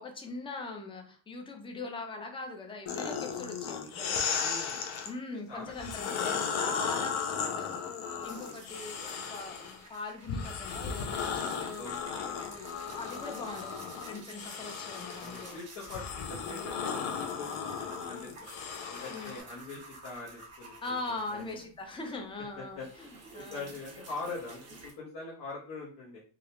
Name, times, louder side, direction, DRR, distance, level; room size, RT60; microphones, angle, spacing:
voice 1, 0.0-4.4 5.0-7.8 8.2-11.7 12.1-12.3 12.6-15.6 19.1-19.3 20.8-23.7, left 3 dB, 15° left, 4 dB, 0.3 m, -41 dB
sound 1, 2.9-5.1 5.7-9.8 10.3-19.4, left 6 dB, 85° left, 0.6 m, -35 dB
voice 2, 4.1-4.9 5.5-5.7 6.2-6.3 11.7-12.5 15.2-18.5 18.9-21.6 22.6-22.9 23.5-26.2, left 3 dB, 60° left, -4 dB, 0.9 m, -43 dB
sound 2, 8.2-22.0 22.3-24.9, right 2 dB, 35° right, 1.0 m, -52 dB
2.4 x 2.0 x 2.9 m, 0.42 s
cardioid pair, 120°, 46 cm